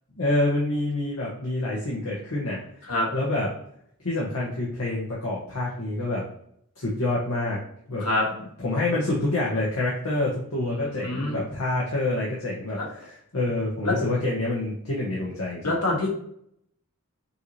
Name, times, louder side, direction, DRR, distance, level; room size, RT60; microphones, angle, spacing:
voice 1, 0.2-2.6 3.1-3.5 4.0-6.2 6.8-7.6 7.9-8.0 8.6-15.8, left 2 dB, 70° left, -6 dB, 1.1 m, -27 dB
voice 2, 10.6-11.4 12.8-12.9 13.8-13.9 15.6-16.1, left 2 dB, 90° left, -1 dB, 1.3 m, -26 dB
5.4 x 2.8 x 3.1 m, 0.70 s
head